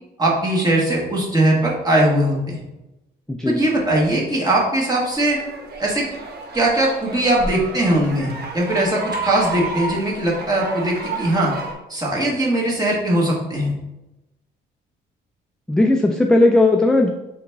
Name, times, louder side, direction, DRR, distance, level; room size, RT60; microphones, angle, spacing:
voice 1, 0.2-2.6 3.4-5.4 5.8-6.0 6.5-11.5 11.9-13.7, right 1 dB, 20° right, -4 dB, 1.4 m, -20 dB
voice 2, 3.3-3.6 15.7-17.1, left 2 dB, 5° left, 2 dB, 0.3 m, -16 dB
sound 1, 5.1-11.7, right 3 dB, 55° right, 0.9 m, -32 dB
3.8 x 3.4 x 3.4 m, 0.98 s
cardioid pair, 90°, 20 cm